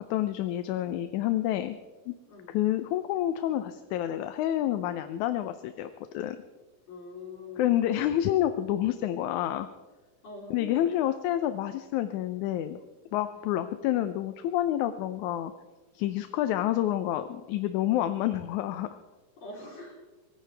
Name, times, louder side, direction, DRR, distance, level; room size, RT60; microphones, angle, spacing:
voice 1, 0.0-1.8 2.1-2.2 2.5-5.9 6.1-6.4 7.6-9.7 10.5-12.8 13.1-15.5 16.0-18.9, left 12 dB, 75° left, 9 dB, 2.0 m, -28 dB
voice 2, 6.9-7.8 10.2-10.9 16.0-16.2 19.4-20.0, left 3 dB, 55° left, -3 dB, 4.7 m, -44 dB
23.5 x 18.5 x 3.4 m, 1.2 s
omnidirectional pair, 3.6 m